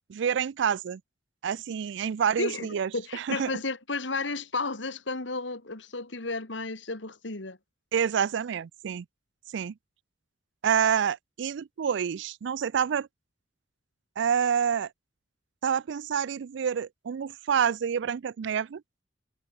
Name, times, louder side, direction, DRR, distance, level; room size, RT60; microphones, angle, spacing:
voice 1, 0.1-1.0 1.4-3.5 7.9-9.1 9.5-9.7 10.6-13.1 14.2-14.9 15.6-18.8, right 7 dB, 70° right, 0.4 m, -28 dB
voice 2, 2.4-7.6, left 3 dB, 70° left, 2.7 m, -33 dB
head